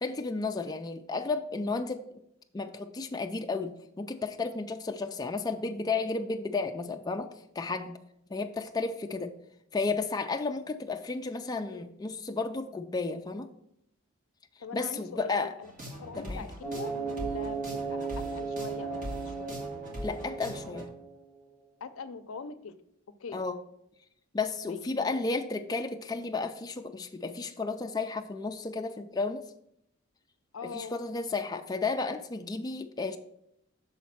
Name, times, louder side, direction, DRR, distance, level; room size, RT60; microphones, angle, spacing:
voice 1, 0.0-2.2 2.5-7.3 7.5-8.0 8.3-9.3 9.7-13.5 14.7-15.5 16.2-16.4 20.0-20.9 23.3-23.6 24.3-29.5 30.7-33.2, left 3 dB, 20° left, 4 dB, 0.4 m, -33 dB
voice 2, 14.6-15.7 16.0-19.6 21.8-22.7 23.2-23.4 24.6-25.2 30.5-31.0, left 4 dB, 70° left, 11 dB, 0.5 m, -43 dB
sound 1, 15.6-20.9, equal, 40° right, 1.9 m, -41 dB
sound 2, 16.6-21.3, right 5 dB, 10° right, 2.3 m, -36 dB
6.4 x 4.1 x 5.9 m, 0.75 s
head